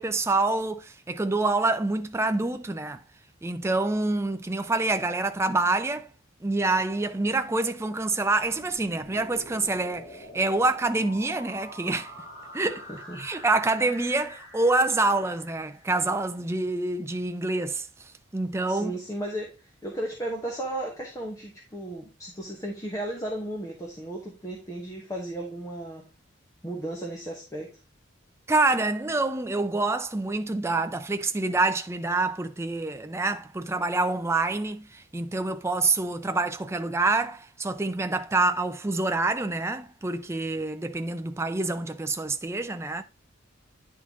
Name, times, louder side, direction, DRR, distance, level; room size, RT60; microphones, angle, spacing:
voice 1, 0.0-3.0 3.4-6.1 6.4-12.1 12.5-12.9 13.2-17.9 18.3-19.0 28.5-43.0, right 2 dB, 15° right, 0.4 m, -26 dB
sound 1, 8.4-16.2, equal, 35° left, 4.3 m, -46 dB
voice 2, 12.9-13.3 18.7-26.0 26.6-27.7, right 1 dB, 15° left, 1.1 m, -35 dB
9.8 x 3.8 x 3.6 m
head